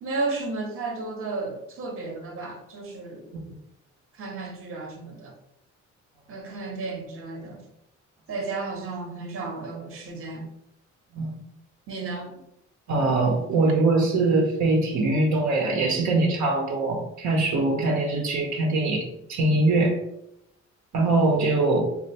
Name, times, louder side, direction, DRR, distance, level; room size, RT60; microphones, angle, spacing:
voice 1, 0.0-3.3 4.1-5.3 6.3-7.6 8.3-10.5 11.9-12.3, right 3 dB, 45° right, 2 dB, 0.8 m, -33 dB
voice 2, 12.9-20.0 20.9-21.8, right 2 dB, 70° right, 0 dB, 0.7 m, -22 dB
3.3 x 2.4 x 2.8 m, 0.79 s
cardioid pair, 90°, 30 cm